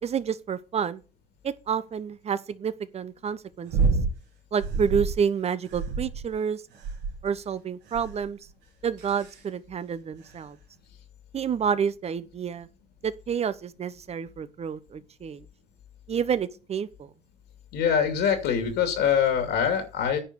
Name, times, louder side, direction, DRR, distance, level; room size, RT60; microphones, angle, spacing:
voice 1, 0.0-1.0 1.4-3.9 4.5-6.6 7.2-8.4 8.8-10.6 11.3-12.7 13.0-15.4 16.1-17.1, right 7 dB, 40° right, 1.0 m, -29 dB
sound 1, 3.7-4.2 4.6-5.2 5.7-6.3 6.8-7.3 7.9-8.3 9.0-9.4 10.3-10.4, right 4 dB, 85° right, 3.0 m, -27 dB
voice 2, 17.7-20.2, left 8 dB, 80° left, 2.5 m, -24 dB
9.9 x 5.2 x 7.0 m
cardioid pair, 110°, 17 cm